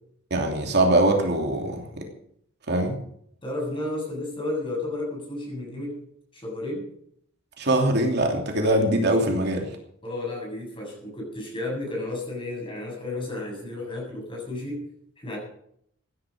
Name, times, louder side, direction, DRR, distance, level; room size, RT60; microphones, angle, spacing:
voice 1, 0.3-2.0 2.7-3.0 7.6-9.7, right 1 dB, 55° right, 2 dB, 2.9 m, -22 dB
voice 2, 3.4-6.0 6.3-6.9 10.0-14.9 15.2-15.4, left 2 dB, 25° left, -1 dB, 7.5 m, -32 dB
16.0 x 10.5 x 6.5 m, 0.69 s
head